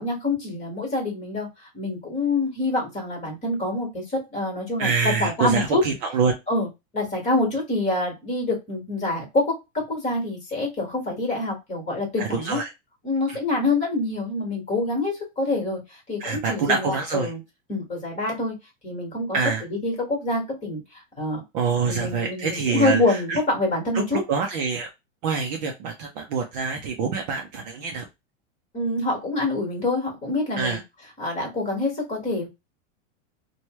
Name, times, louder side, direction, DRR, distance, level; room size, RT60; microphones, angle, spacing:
voice 1, 0.0-1.5 1.7-5.8 6.5-6.7 6.9-12.6 13.0-15.8 16.1-17.4 17.7-18.5 18.8-19.3 19.7-20.8 21.2-21.4 21.9-24.2 28.7-30.8 31.2-32.5, left 2 dB, 20° left, 0 dB, 1.5 m, -26 dB
voice 2, 4.8-6.3 12.2-12.7 13.3-13.4 16.2-17.3 19.3-19.6 21.5-23.4 24.3-24.9 25.2-28.1 30.6-30.8, right 5 dB, 35° right, 2 dB, 0.5 m, -25 dB
3.0 x 2.2 x 3.0 m, 0.22 s
supercardioid pair, 160°, 38 cm